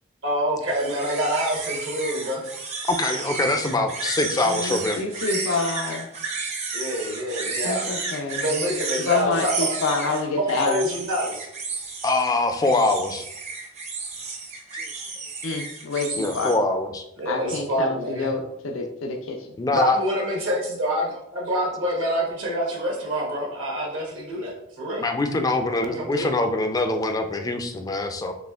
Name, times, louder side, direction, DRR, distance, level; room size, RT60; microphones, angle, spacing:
voice 1, 0.2-2.5 6.7-7.8 8.3-9.7 10.3-11.5 17.2-18.3 19.7-25.0 25.8-26.3, equal, 70° right, -3 dB, 1.0 m, -26 dB
sound 1, 0.7-16.5, right 4 dB, 35° right, 0.6 m, -32 dB
voice 2, 2.9-5.0 12.0-13.2 16.2-17.0 19.6-20.0 25.0-28.3, left 2 dB, 20° left, 6 dB, 0.3 m, -23 dB
voice 3, 4.5-6.1 7.6-8.4 9.1-10.8 15.4-16.5 17.3-19.2, left 4 dB, 80° left, 2 dB, 0.4 m, -27 dB
4.1 x 3.1 x 2.3 m, 0.78 s
head